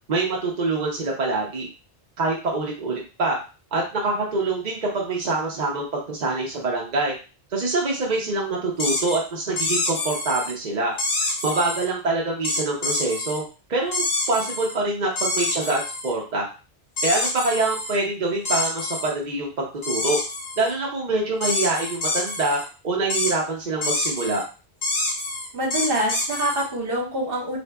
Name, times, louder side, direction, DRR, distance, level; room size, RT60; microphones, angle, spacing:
voice 1, 0.1-1.7 2.2-3.4 3.7-7.1 7.5-10.9 11.2-13.4 13.7-16.5 17.0-20.2 20.6-24.4, right 3 dB, 50° right, -2 dB, 0.8 m, -25 dB
sound 1, 8.8-9.2 9.6-10.5 11.0-11.9 12.4-13.4 13.9-14.8 15.2-16.1 17.0-18.0 18.5-19.1 19.8-20.7 21.4-22.7 23.1-23.3 23.8-24.4 24.8-26.7, left 2 dB, 50° left, 1.0 m, -27 dB
voice 2, 25.5-27.6, right 1 dB, 65° right, -2 dB, 1.2 m, -25 dB
3.8 x 2.6 x 2.2 m, 0.33 s
omnidirectional pair, 1.1 m